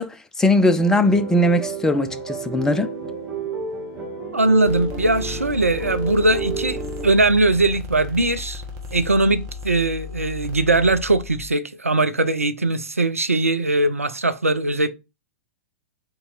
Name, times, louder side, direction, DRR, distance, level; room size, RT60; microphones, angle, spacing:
voice 1, 0.0-2.9, left 1 dB, 5° left, 0.4 m, -19 dB
sound 1, 0.8-7.1, right 2 dB, 20° right, 1.2 m, -31 dB
voice 2, 4.3-8.6 8.9-14.9, right 2 dB, 85° right, 0.5 m, -20 dB
sound 2, 4.7-11.5, left 4 dB, 40° right, 1.1 m, -35 dB
3.7 x 2.8 x 3.9 m
figure-of-eight pair, 100°, 7 cm